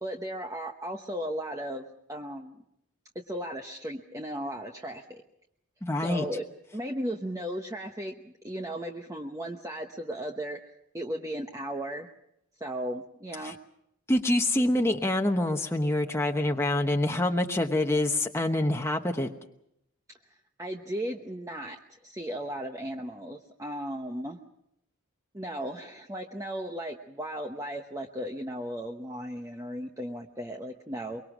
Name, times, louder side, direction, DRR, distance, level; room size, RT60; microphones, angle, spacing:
voice 1, 0.0-2.6 3.3-5.2 6.0-6.5 6.7-10.6 10.9-12.1 12.6-13.6 20.6-24.4 25.3-31.2, equal, 15° right, 3 dB, 1.0 m, -36 dB
voice 2, 5.8-6.2 13.4-13.5 14.1-19.3, left 1 dB, 10° left, 3 dB, 1.0 m, -26 dB
24.0 x 23.0 x 6.1 m, 0.77 s
head